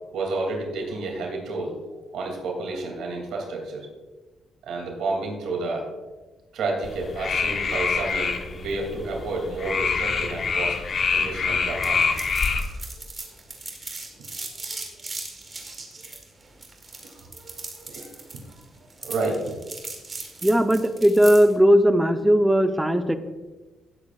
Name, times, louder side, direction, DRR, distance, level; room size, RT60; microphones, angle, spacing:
voice 1, 0.1-3.9 4.6-5.9 6.5-10.8 11.1-12.0 12.9-13.0 14.6-14.8 17.3-18.4 19.0-19.6, right 2 dB, 75° right, 0 dB, 2.7 m, -30 dB
sound 1, 6.8-12.6, left 5 dB, 45° left, 1.1 m, -26 dB
sound 2, 11.8-21.5, right 3 dB, 30° right, 2.5 m, -38 dB
voice 2, 20.4-23.2, equal, 10° right, 7 dB, 0.9 m, -18 dB
18.0 x 8.1 x 2.5 m, 1.2 s
cardioid pair, 90°, 0 cm